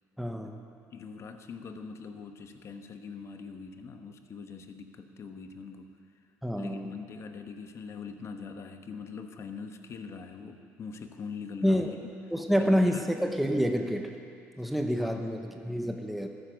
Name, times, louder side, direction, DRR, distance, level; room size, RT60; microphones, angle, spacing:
voice 1, 0.2-0.6 6.4-7.0 11.6-11.9 12.3-14.2 14.6-16.3, equal, ahead, 4 dB, 1.0 m, -28 dB
voice 2, 0.9-6.0 6.6-12.1 12.6-13.0 14.6-14.7 15.0-15.3, left 5 dB, 45° left, 7 dB, 1.2 m, -43 dB
14.0 x 10.5 x 6.3 m, 2.4 s
supercardioid pair, 90°, 7 cm